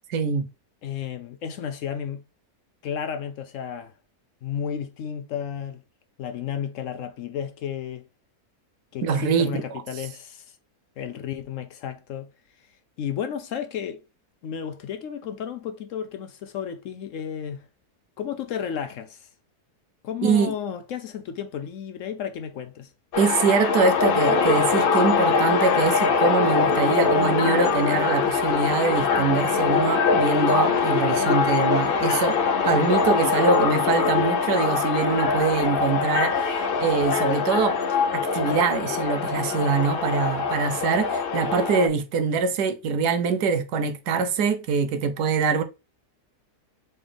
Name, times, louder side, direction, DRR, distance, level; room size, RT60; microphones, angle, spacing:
voice 1, 0.1-0.5 9.0-9.8 20.2-20.5 23.2-32.4 32.6-37.8 38.3-45.6, right 5 dB, 90° right, 1.3 m, -24 dB
voice 2, 0.8-2.2 2.8-3.9 4.4-5.8 6.2-8.0 8.9-10.6 11.0-12.3 13.0-14.0 14.4-17.6 18.2-19.3 20.0-22.9, left 8 dB, 65° left, 0.8 m, -32 dB
sound 1, 23.1-41.9, left 5 dB, 85° left, 0.5 m, -23 dB
4.0 x 3.7 x 3.4 m
omnidirectional pair, 1.6 m